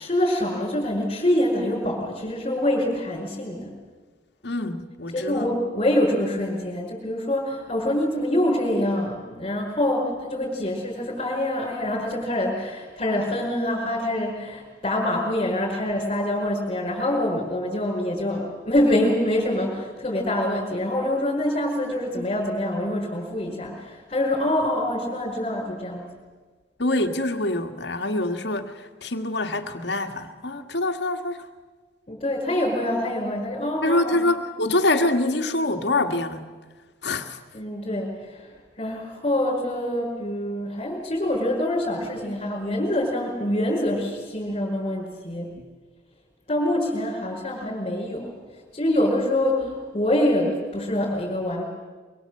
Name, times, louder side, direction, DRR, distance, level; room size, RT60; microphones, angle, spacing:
voice 1, 0.0-3.7 5.1-26.0 32.1-34.2 37.5-38.5 38.8-45.5 46.5-48.3 48.7-51.6, left 1 dB, 30° left, -6 dB, 5.4 m, -25 dB
voice 2, 4.4-5.5 26.8-31.5 33.8-36.5 37.0-37.4 45.6-45.7, left 2 dB, 65° left, 6 dB, 1.8 m, -25 dB
24.0 x 23.5 x 7.9 m, 1.4 s
head